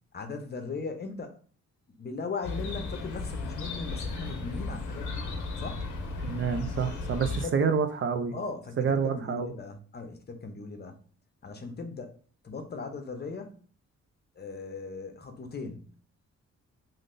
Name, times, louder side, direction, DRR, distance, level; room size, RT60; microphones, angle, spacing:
voice 1, 0.1-1.4 2.0-5.3 5.6-5.9 7.4-7.8 8.3-11.0 11.4-12.2 12.4-13.6 14.4-15.9, left 4 dB, 35° left, 0.6 m, -38 dB
Chirp tweet, 2.4-7.5, left 3 dB, 80° left, 0.6 m, -35 dB
voice 2, 6.2-8.3 8.8-9.5, right 6 dB, 45° right, 0.4 m, -28 dB
3.4 x 2.5 x 2.5 m
cardioid pair, 90°, 30 cm